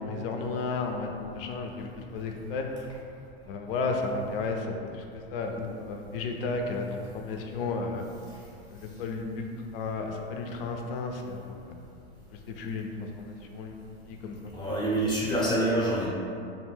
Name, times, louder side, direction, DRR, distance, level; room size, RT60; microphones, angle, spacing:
voice 1, 0.0-2.9 3.5-5.0 5.3-8.1 8.7-9.5 9.7-11.7 12.5-12.9 13.2-13.7 14.1-14.6, left 3 dB, 65° left, 3 dB, 0.4 m, -33 dB
voice 2, 14.5-16.1, right 1 dB, 15° left, -7 dB, 0.6 m, -26 dB
2.5 x 2.1 x 3.2 m, 2.5 s
hypercardioid pair, 95°, 31 cm